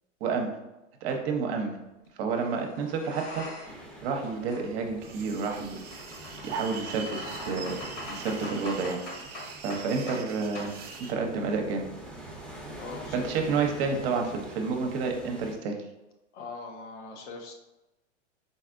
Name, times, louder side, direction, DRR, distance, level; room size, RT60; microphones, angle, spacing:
voice 1, 0.2-0.5 1.0-1.8 2.2-3.5 4.0-6.0 6.4-7.1 7.4-7.8 8.1-9.0 9.6-10.7 11.1-11.9 13.1-15.8, right 4 dB, 50° right, 3 dB, 0.9 m, -29 dB
sound 1, 1.1-1.3 2.3-3.9 4.2-10.3 10.5-10.8, left 2 dB, 40° left, 1.2 m, -43 dB
sound 2, 3.6-15.5, right 1 dB, 5° left, 0.8 m, -46 dB
sound 3, 5.0-11.2, right 5 dB, 25° right, 0.6 m, -44 dB
voice 2, 12.8-13.6 16.3-17.5, left 4 dB, 70° left, 3 dB, 1.0 m, -42 dB
4.1 x 4.1 x 2.5 m, 0.99 s
hypercardioid pair, 120°, 37 cm